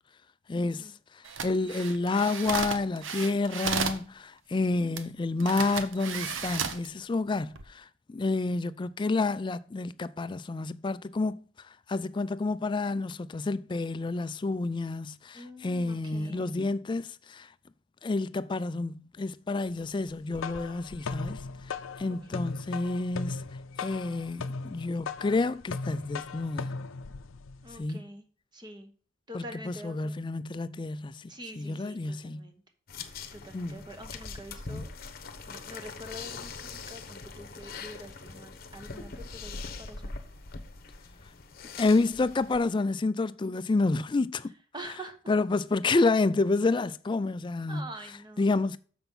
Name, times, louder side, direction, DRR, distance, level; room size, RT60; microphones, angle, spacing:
voice 1, 0.5-11.4 11.9-17.5 18.0-21.5 22.0-23.4 23.8-26.7 27.7-28.0 29.3-32.5 33.5-33.9 41.8-44.5 44.8-44.9 45.3-47.9 48.4-48.8, left 3 dB, 25° left, 0.3 m, -29 dB
sound 1, 1.2-4.0 5.0-5.1 5.4-6.9 7.4-7.6, right 6 dB, 70° right, 0.9 m, -33 dB
voice 2, 15.3-16.5 22.3-22.5 27.6-28.2 28.5-28.9 29.3-30.1 31.3-32.6 33.3-34.9 35.5-40.2 44.7-45.2 47.7-48.5, equal, 20° right, 1.1 m, -45 dB
sound 2, 20.1-27.8, left 4 dB, 80° left, 0.5 m, -38 dB
sound 3, 32.9-42.7, left 4 dB, 50° left, 0.9 m, -42 dB
6.9 x 6.0 x 5.3 m
head